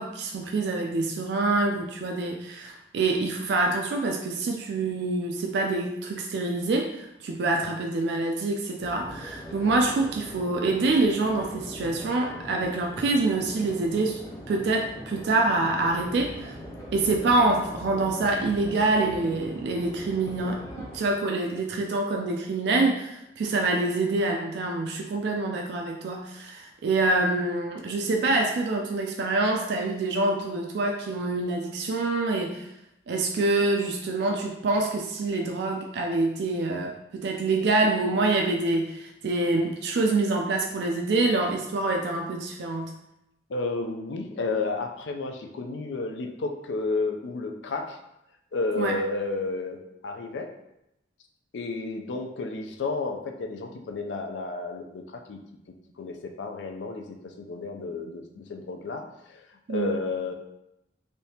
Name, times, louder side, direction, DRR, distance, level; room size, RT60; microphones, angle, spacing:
voice 1, 0.0-14.2 14.5-16.6 16.9-32.7 33.1-42.9 48.8-48.9 59.7-60.0, right 2 dB, 70° right, 1 dB, 0.3 m, -26 dB
sound 1, 8.8-21.0, equal, 15° left, 0.6 m, -41 dB
voice 2, 43.5-48.0 48.5-50.5 51.5-55.4 56.0-59.4 59.7-60.3, left 3 dB, 85° left, 5 dB, 0.4 m, -32 dB
3.4 x 2.7 x 2.8 m, 0.85 s
head